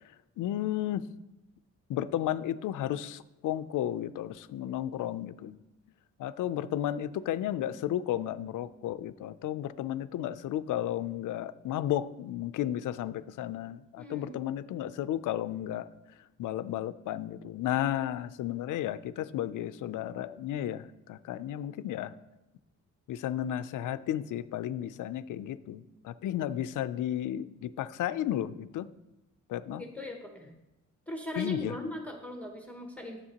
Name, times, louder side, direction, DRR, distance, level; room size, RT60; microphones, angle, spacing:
voice 1, 0.4-1.0 1.9-5.6 6.2-15.9 16.4-22.1 23.1-28.9 29.5-29.8 31.4-31.8, left 12 dB, 80° left, 14 dB, 0.5 m, -33 dB
voice 2, 14.0-14.4 29.6-30.5 31.1-33.2, left 1 dB, 5° left, 2 dB, 0.7 m, -39 dB
12.5 x 7.3 x 2.9 m, 0.98 s
wide cardioid pair, 165°, 31 cm